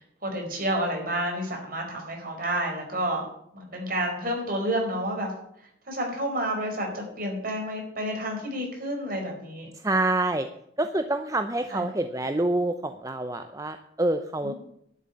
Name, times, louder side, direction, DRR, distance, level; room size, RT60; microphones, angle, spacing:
voice 1, 0.2-3.3 3.5-5.3 5.9-9.7 11.7-11.8 14.4-14.5, right 1 dB, 50° right, 1 dB, 4.7 m, -30 dB
voice 2, 9.8-10.5 10.8-14.5, right 2 dB, 15° right, 8 dB, 0.6 m, -27 dB
11.5 x 7.6 x 9.6 m, 0.72 s
head